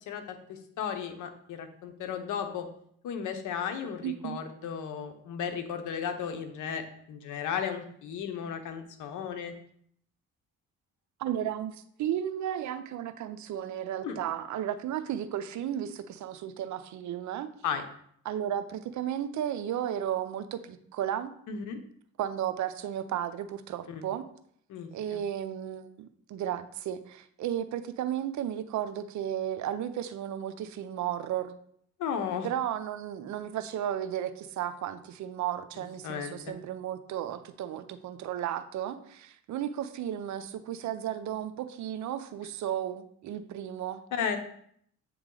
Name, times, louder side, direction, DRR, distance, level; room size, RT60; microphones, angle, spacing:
voice 1, 0.1-2.7 3.0-9.5 14.0-14.2 17.6-17.9 21.5-21.8 23.9-24.0 24.7-25.2 32.0-32.5 36.0-36.5 44.1-44.4, left 7 dB, 80° left, 7 dB, 0.9 m, -35 dB
voice 2, 4.0-4.4 11.2-17.5 18.2-21.3 22.2-24.3 24.9-31.5 32.4-44.0, right 10 dB, 70° right, 11 dB, 0.6 m, -34 dB
8.1 x 3.1 x 3.8 m, 0.67 s
cardioid pair, 90°, 30 cm